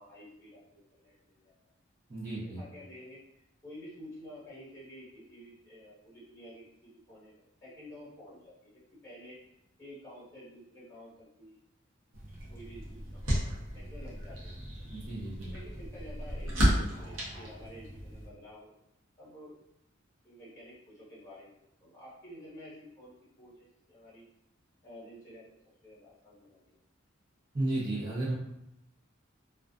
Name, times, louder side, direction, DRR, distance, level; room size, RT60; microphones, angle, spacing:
voice 1, 0.0-1.7 2.4-3.2 3.6-8.7 9.0-9.4 9.8-11.6 12.5-14.5 15.4-18.8 19.2-19.6 20.2-24.2 24.8-25.4 25.8-26.7, equal, 15° left, -9 dB, 1.0 m, -50 dB
voice 2, 2.1-2.6 14.9-15.5 27.5-28.3, right 1 dB, 35° right, -10 dB, 0.7 m, -33 dB
sound 1, 12.1-18.3, equal, 70° right, 0.8 m, -33 dB
2.4 x 2.4 x 2.4 m, 0.84 s
head